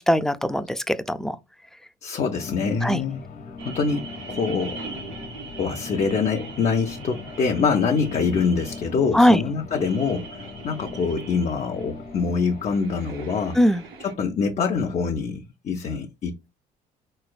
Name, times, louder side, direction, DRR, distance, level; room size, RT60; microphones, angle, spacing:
voice 1, 0.1-1.4 2.8-3.0 9.1-9.4 13.6-13.8, equal, 5° left, 0.3 m, -20 dB
voice 2, 2.0-3.2 3.7-4.8 5.6-13.6 14.0-16.6, left 5 dB, 40° left, 0.6 m, -25 dB
sound 1, 2.3-12.7, left 4 dB, 60° left, 1.2 m, -39 dB
sound 2, 3.6-14.1, right 5 dB, 90° right, 1.3 m, -41 dB
4.1 x 3.2 x 2.3 m
cardioid pair, 110°, 17 cm